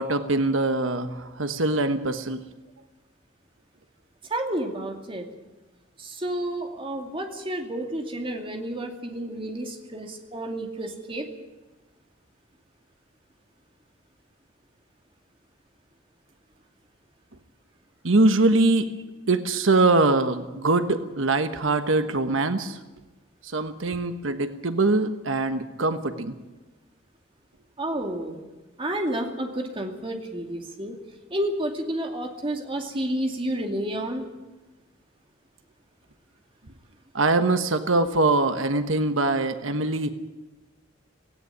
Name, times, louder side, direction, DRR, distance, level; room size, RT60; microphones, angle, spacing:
voice 1, 0.0-2.4 18.0-18.9 19.3-22.8 23.4-26.4 37.1-40.1, right 2 dB, 85° right, 9 dB, 1.3 m, -23 dB
voice 2, 4.3-5.3 6.0-11.3 27.8-28.4 28.8-31.0 31.3-34.3, right 1 dB, 25° right, 3 dB, 2.4 m, -30 dB
17.5 x 16.5 x 9.5 m, 1.2 s
head